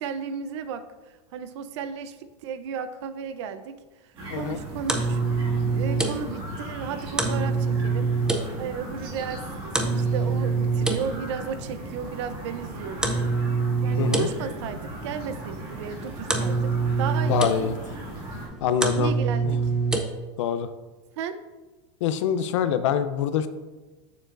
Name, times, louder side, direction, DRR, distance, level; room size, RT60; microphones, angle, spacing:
voice 1, 0.0-5.2 5.6-8.1 8.6-13.1 13.8-16.7 17.0-17.7 18.9-19.7 21.2-21.4, right 7 dB, 70° right, 10 dB, 0.7 m, -34 dB
sound 1, 4.1-18.5, right 1 dB, 35° right, 2.2 m, -38 dB
sound 2, 4.4-20.0, right 4 dB, 5° right, 0.5 m, -27 dB
voice 2, 17.3-17.8 18.6-19.1 19.4-19.5 20.4-20.7 22.0-23.5, left 8 dB, 80° left, 11 dB, 0.6 m, -25 dB
8.9 x 7.0 x 2.6 m, 1.2 s
supercardioid pair, 160°, 15 cm